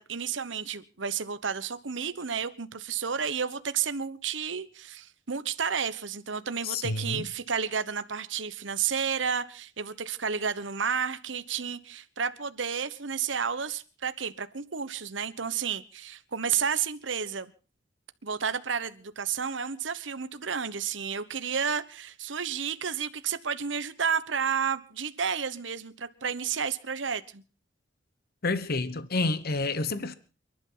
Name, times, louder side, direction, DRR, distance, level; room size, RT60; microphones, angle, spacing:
voice 1, 0.0-17.5 18.2-27.4, right 6 dB, 75° right, 1.2 m, -31 dB
voice 2, 6.6-7.3 28.4-30.1, left 3 dB, 55° left, 1.1 m, -29 dB
29.0 x 11.5 x 3.9 m
head